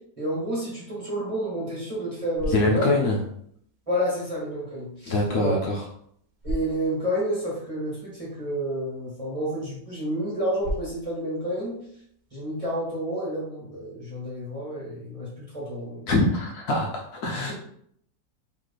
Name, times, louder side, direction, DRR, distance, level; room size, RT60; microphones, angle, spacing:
voice 1, 0.2-2.9 3.9-5.5 6.4-11.7 12.3-16.1, equal, 20° right, -7 dB, 1.7 m, -30 dB
sound 1, 2.0-13.1, right 1 dB, 80° right, 0.4 m, -42 dB
voice 2, 2.5-3.2 5.1-5.8 16.1-17.5, left 2 dB, 70° left, -1 dB, 1.1 m, -24 dB
3.3 x 3.2 x 4.0 m, 0.68 s
omnidirectional pair, 1.9 m